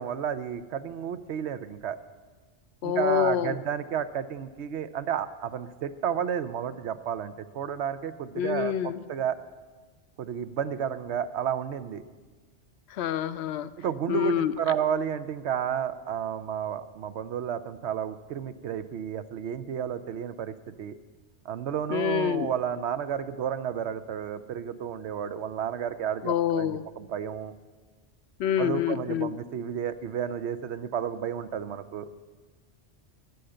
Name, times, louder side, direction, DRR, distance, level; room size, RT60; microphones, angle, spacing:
voice 1, 0.0-2.0 2.8-9.4 10.2-12.0 13.8-21.0 21.4-27.5 28.6-32.1, right 8 dB, 75° right, 12 dB, 0.9 m, -31 dB
voice 2, 2.8-3.6 8.4-9.0 12.9-13.7 14.1-14.5 21.9-22.5 26.2-26.8 28.4-29.3, left 10 dB, 70° left, 13 dB, 0.8 m, -27 dB
13.5 x 6.5 x 8.8 m, 1.3 s
omnidirectional pair, 1.2 m